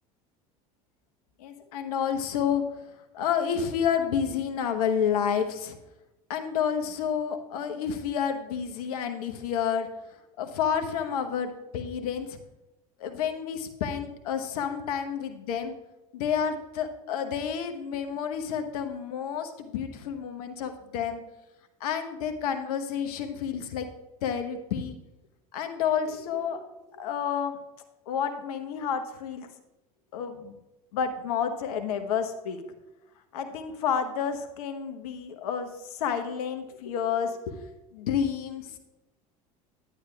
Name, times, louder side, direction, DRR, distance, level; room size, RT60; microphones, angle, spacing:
voice 1, 1.4-2.6 3.1-5.8 6.3-9.9 10.4-12.4 13.0-15.7 16.1-21.2 21.8-23.9 24.2-25.0 25.5-26.6 26.9-27.6 28.1-29.5 30.1-30.6 30.9-32.6 33.3-37.6 37.9-38.8, left 7 dB, 80° left, 7 dB, 1.0 m, -30 dB
11.0 x 9.6 x 2.3 m, 0.97 s
hypercardioid pair, 80°, 19 cm